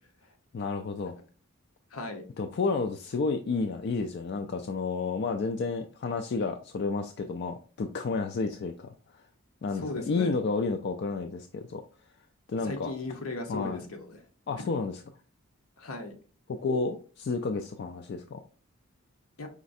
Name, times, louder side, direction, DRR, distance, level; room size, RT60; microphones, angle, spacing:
voice 1, 0.5-1.1 2.4-8.9 9.6-11.8 12.5-12.9 13.5-13.8 14.5-15.0 16.5-18.4, left 4 dB, 50° left, 5 dB, 0.3 m, -31 dB
voice 2, 1.9-2.2 9.7-10.4 12.6-14.2 14.6-14.8 15.8-16.1 19.4-19.5, left 2 dB, 75° left, 4 dB, 0.9 m, -37 dB
4.9 x 3.2 x 2.6 m, 0.38 s
head